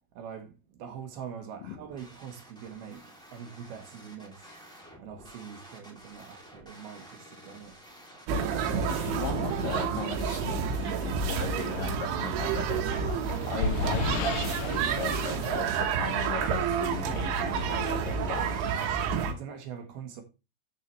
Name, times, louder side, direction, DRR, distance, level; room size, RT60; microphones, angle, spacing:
voice 1, 0.1-4.5 5.0-7.8 18.9-20.2, right 8 dB, 65° right, 3.1 m, -43 dB
sound 1, 1.7-18.9, equal, ahead, 1.4 m, -51 dB
sound 2, 8.3-19.3, right 6 dB, 85° right, 3.4 m, -29 dB
voice 2, 8.9-18.5, left 6 dB, 65° left, 2.3 m, -38 dB
sound 3, 13.1-16.5, left 5 dB, 85° left, 2.1 m, -34 dB
13.0 x 5.7 x 3.1 m
omnidirectional pair, 5.2 m